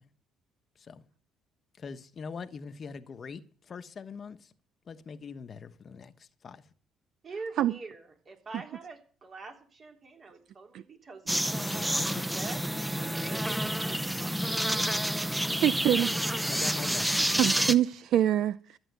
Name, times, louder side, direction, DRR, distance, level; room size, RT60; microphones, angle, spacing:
voice 1, 1.8-3.4 3.7-4.4 4.9-6.1 6.4-6.6 12.0-12.1 15.5-15.6 16.5-17.4, left 5 dB, 45° left, 1.1 m, -42 dB
voice 2, 7.2-12.6 12.9-15.2, right 3 dB, 40° right, 3.3 m, -45 dB
sound 1, 11.3-17.7, equal, 5° right, 0.9 m, -29 dB
voice 3, 15.6-16.1 17.4-18.8, right 11 dB, 70° right, 0.5 m, -25 dB
13.5 x 9.0 x 8.1 m
cardioid pair, 90°, 0 cm